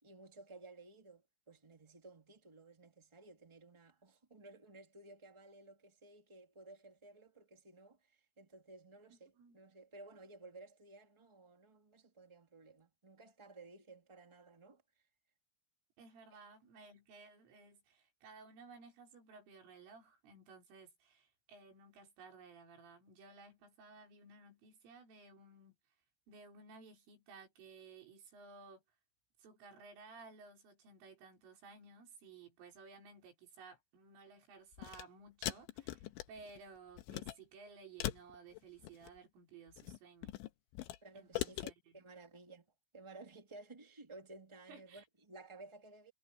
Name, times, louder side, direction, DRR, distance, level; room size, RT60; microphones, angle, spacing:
voice 1, 0.0-14.8 41.0-42.6 42.9-46.1, right 3 dB, 20° right, 0.8 m, -56 dB
voice 2, 16.0-25.7 26.3-28.8 29.4-40.3 41.1-42.0 44.7-45.1, right 4 dB, 80° right, 7.3 m, -57 dB
sound 1, 34.7-35.0 35.4-36.6 37.0-37.4 38.0-39.2 39.7-41.0 41.3-41.7, left 15 dB, 80° left, 3.2 m, -41 dB
omnidirectional pair, 5.7 m